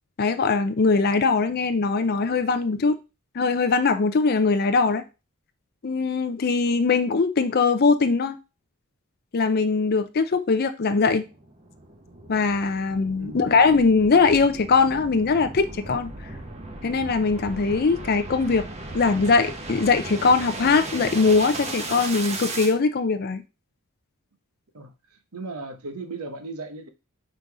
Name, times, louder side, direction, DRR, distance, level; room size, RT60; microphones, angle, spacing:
voice 1, 0.2-3.0 3.3-5.0 5.8-8.4 9.3-11.3 12.3-16.1 16.8-18.7 18.9-23.4, left 4 dB, 45° left, 0.5 m, -21 dB
sound 1, 11.2-22.7, right 2 dB, 30° right, 1.0 m, -36 dB
voice 2, 24.7-26.9, right 3 dB, 80° right, 1.0 m, -37 dB
5.2 x 4.0 x 4.7 m
head